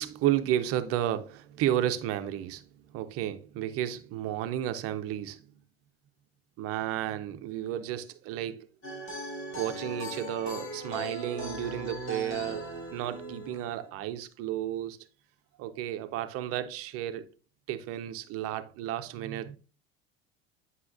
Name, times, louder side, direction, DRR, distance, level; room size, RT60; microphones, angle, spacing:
voice 1, 0.0-5.5 6.6-8.7 9.5-15.0 15.6-17.3 17.7-19.6, right 12 dB, 50° right, 0.6 m, -32 dB
sound 1, 8.8-13.9, right 1 dB, 45° left, 2.9 m, -38 dB
9.6 x 5.6 x 2.6 m
figure-of-eight pair, 65°, 30 cm